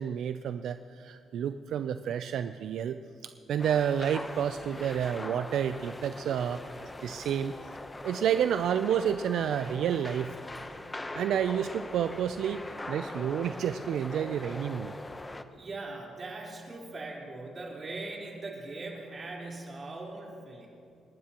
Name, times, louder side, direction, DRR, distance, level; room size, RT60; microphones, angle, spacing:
voice 1, 0.0-3.0 3.2-6.6 7.0-7.6 8.0-10.3 11.1-14.9, right 9 dB, 75° right, 10 dB, 0.4 m, -30 dB
sound 1, 3.6-15.4, left 2 dB, 15° left, 0.8 m, -41 dB
voice 2, 15.5-20.7, right 2 dB, 40° right, -3 dB, 4.0 m, -40 dB
29.5 x 11.5 x 3.0 m, 2.4 s
cardioid pair, 90°, 0 cm